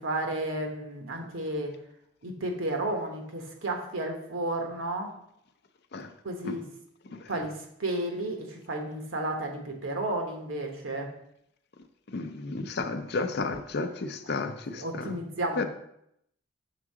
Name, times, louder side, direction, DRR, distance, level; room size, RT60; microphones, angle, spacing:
voice 1, 0.0-1.7 2.2-5.1 6.2-6.6 7.3-11.1 14.3-14.4 14.7-15.6, right 1 dB, 75° right, 3 dB, 1.1 m, -32 dB
voice 2, 12.1-14.8 15.6-15.7, left 3 dB, 55° left, 8 dB, 0.5 m, -32 dB
6.0 x 3.7 x 4.8 m, 0.76 s
head